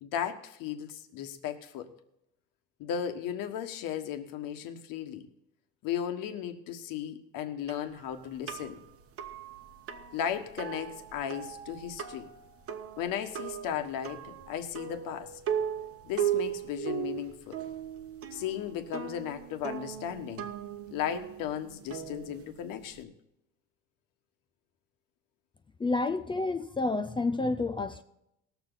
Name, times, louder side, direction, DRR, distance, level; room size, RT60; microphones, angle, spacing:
voice 1, 0.0-1.9 2.8-5.3 5.8-8.8 10.1-12.3 13.0-15.4 16.0-17.6 18.3-20.5 20.9-23.1, left 9 dB, 70° left, 7 dB, 1.5 m, -36 dB
sound 1, 7.7-23.0, right 9 dB, 40° right, 1.0 m, -38 dB
voice 2, 25.8-28.0, left 3 dB, 15° left, 7 dB, 0.4 m, -29 dB
19.5 x 7.1 x 4.0 m, 0.81 s
cardioid pair, 140°, 34 cm